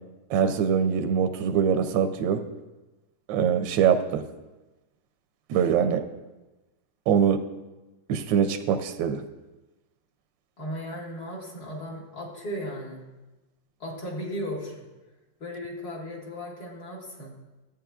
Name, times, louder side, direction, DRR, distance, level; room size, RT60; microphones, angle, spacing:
voice 1, 0.3-2.4 3.3-4.2 5.5-6.0 7.1-7.4 8.1-9.2, right 7 dB, 75° right, 8 dB, 1.2 m, -23 dB
voice 2, 10.6-13.0 13.8-14.9 15.4-17.4, equal, 50° left, -3 dB, 2.2 m, -36 dB
13.0 x 9.0 x 2.3 m, 1.1 s
omnidirectional pair, 2.3 m